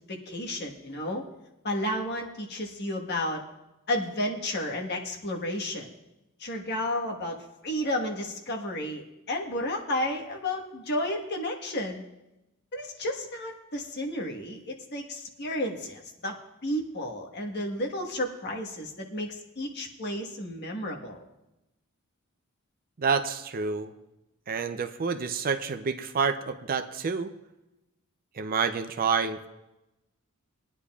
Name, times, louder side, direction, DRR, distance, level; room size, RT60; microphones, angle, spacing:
voice 1, 0.1-1.2 1.6-3.4 3.9-5.9 6.4-7.4 7.6-12.0 12.7-16.3 16.6-21.2, left 1 dB, 50° left, 0 dB, 1.4 m, -32 dB
voice 2, 23.0-23.9 24.5-27.3 28.3-29.5, right 5 dB, 40° right, 9 dB, 0.5 m, -28 dB
20.5 x 9.8 x 2.4 m, 0.96 s
head